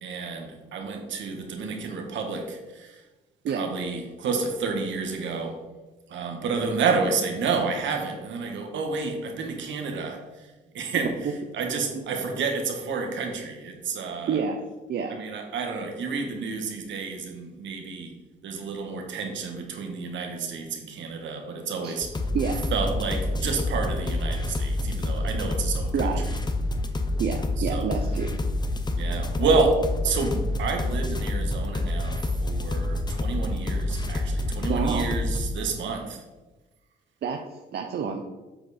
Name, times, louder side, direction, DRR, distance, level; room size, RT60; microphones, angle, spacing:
voice 1, 0.0-3.0 3.5-5.6 6.1-10.5 10.7-11.1 11.5-14.4 15.1-18.1 18.4-22.1 22.7-26.0 27.7-27.9 29.0-36.2, right 4 dB, 70° right, 3 dB, 1.4 m, -29 dB
sound 1, 22.0-35.5, left 1 dB, 20° left, 0.7 m, -28 dB
voice 2, 25.9-26.2 27.2-28.3 34.7-35.1 37.2-38.2, right 6 dB, 55° right, 3 dB, 0.6 m, -28 dB
7.7 x 4.5 x 4.2 m, 1.2 s
cardioid pair, 90°, 20 cm